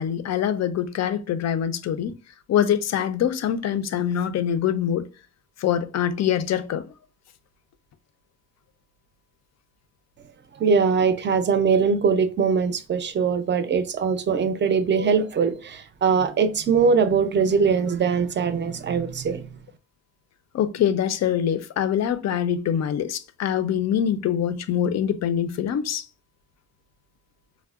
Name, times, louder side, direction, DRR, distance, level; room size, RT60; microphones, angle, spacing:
voice 1, 0.0-2.1 2.5-5.1 5.6-6.9 20.5-26.1, left 9 dB, 60° left, 0.4 m, -24 dB
voice 2, 10.6-19.5, right 5 dB, 40° right, 0.4 m, -21 dB
4.5 x 2.1 x 2.4 m
wide cardioid pair, 130°, 30 cm